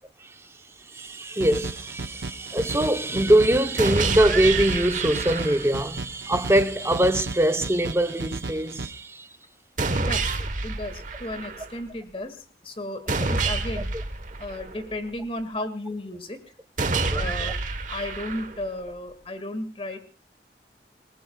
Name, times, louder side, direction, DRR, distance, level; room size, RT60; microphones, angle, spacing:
voice 1, 0.9-9.3 13.8-13.9 16.9-17.3, right 1 dB, 15° right, 0.8 m, -23 dB
sound 1, 1.4-8.9, right 3 dB, 80° right, 0.8 m, -35 dB
sound 2, 3.8-5.8 9.8-11.8 13.1-15.1 16.8-18.8, right 3 dB, 45° right, 1.2 m, -28 dB
voice 2, 9.9-10.3 10.6-13.9 14.4-16.4 17.1-17.6 17.9-20.0, left 1 dB, 30° left, 2.0 m, -34 dB
27.5 x 19.0 x 2.3 m
head